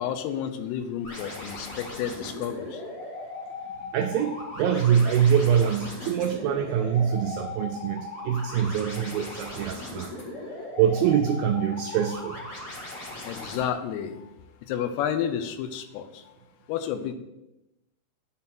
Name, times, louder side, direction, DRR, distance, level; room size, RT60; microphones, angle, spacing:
voice 1, 0.0-2.8 13.2-14.2 14.7-16.2 16.7-17.1, left 9 dB, 80° left, 8 dB, 2.7 m, -31 dB
sound 1, 1.0-13.6, left 2 dB, 45° left, 2.2 m, -38 dB
voice 2, 3.9-10.1 10.8-12.4, right 8 dB, 90° right, 5 dB, 2.0 m, -24 dB
9.7 x 3.8 x 6.0 m, 0.93 s
omnidirectional pair, 4.7 m